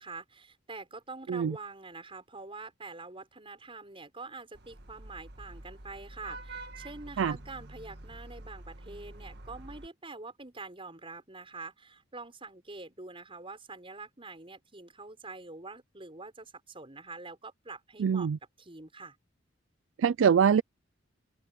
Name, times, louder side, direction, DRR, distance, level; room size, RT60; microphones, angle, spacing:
voice 1, 0.0-18.3 18.6-19.2, right 3 dB, 30° right, 6.2 m, -45 dB
Vehicle horn car horn honking / Traffic noise roadway noise, 4.5-9.9, right 2 dB, 55° right, 1.8 m, -47 dB
voice 2, 18.0-18.4 20.0-20.6, right 7 dB, 80° right, 0.4 m, -24 dB
open air
head